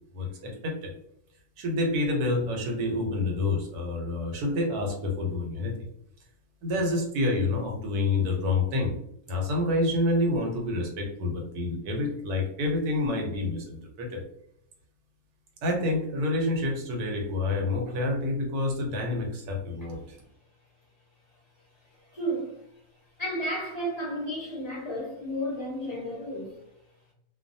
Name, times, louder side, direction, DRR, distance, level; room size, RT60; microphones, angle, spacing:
voice 1, 0.1-0.9 1.6-5.7 6.6-8.9 9.3-14.2 15.6-20.0, left 2 dB, 85° right, 1 dB, 1.3 m, -28 dB
voice 2, 22.1-22.6 23.2-26.6, equal, 40° left, -7 dB, 0.6 m, -32 dB
2.5 x 2.2 x 2.6 m, 0.77 s
omnidirectional pair, 1.6 m